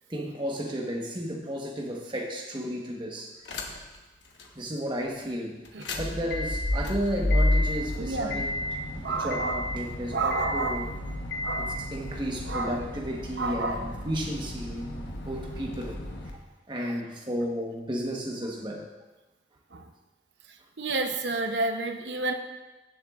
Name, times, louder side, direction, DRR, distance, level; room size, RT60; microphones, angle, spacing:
voice 1, 0.1-3.3 4.5-5.6 6.0-8.5 8.9-10.9 11.6-16.0 16.7-18.9, equal, 25° right, 0 dB, 1.2 m, -33 dB
sound 1, 3.5-4.0 4.4-4.5 5.7-16.3, left 1 dB, 80° left, 1.2 m, -31 dB
voice 2, 8.0-8.5 9.0-9.6 10.1-10.8 11.4-11.8 12.5-12.8 13.4-13.9 19.7-19.8 20.8-22.3, right 3 dB, 75° right, 6 dB, 0.8 m, -30 dB
16.5 x 7.3 x 2.5 m, 1.1 s
head